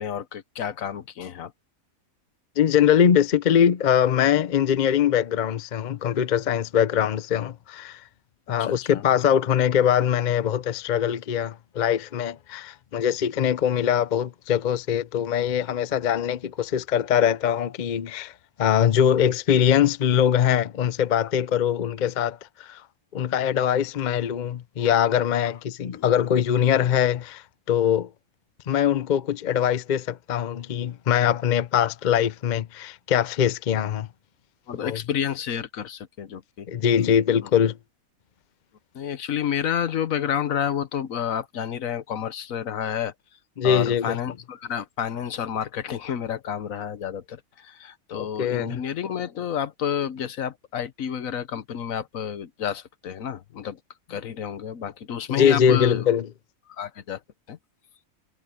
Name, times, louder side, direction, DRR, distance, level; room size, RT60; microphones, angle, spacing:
voice 1, 0.0-1.5 8.6-9.0 25.4-25.5 25.9-26.1 34.7-36.7 38.9-43.1 43.6-53.8 54.1-56.0 56.7-57.2 57.5-57.6, left 9 dB, 70° left, 1.3 m, -30 dB
voice 2, 2.6-8.0 8.5-18.3 18.6-22.8 23.1-28.1 28.7-34.1 34.7-35.0 36.7-37.8 43.6-44.2 48.1-48.8 55.4-56.3, left 9 dB, 50° left, 0.6 m, -22 dB
omnidirectional pair, 1.5 m